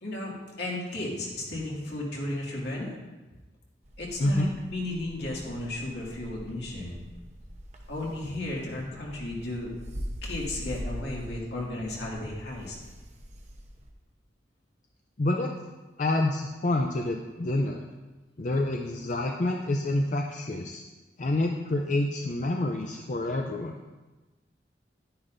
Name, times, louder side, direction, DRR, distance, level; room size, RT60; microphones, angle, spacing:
voice 1, 0.0-2.9 4.0-7.0 7.9-9.7 10.2-12.8, left 1 dB, 70° left, -3 dB, 2.2 m, -34 dB
sound 1, 3.8-13.9, equal, 40° right, 0.9 m, -42 dB
voice 2, 15.2-15.5 16.0-17.8 18.4-20.8 21.2-23.7, left 2 dB, 45° left, 2 dB, 0.5 m, -27 dB
10.5 x 9.9 x 2.6 m, 1.2 s
head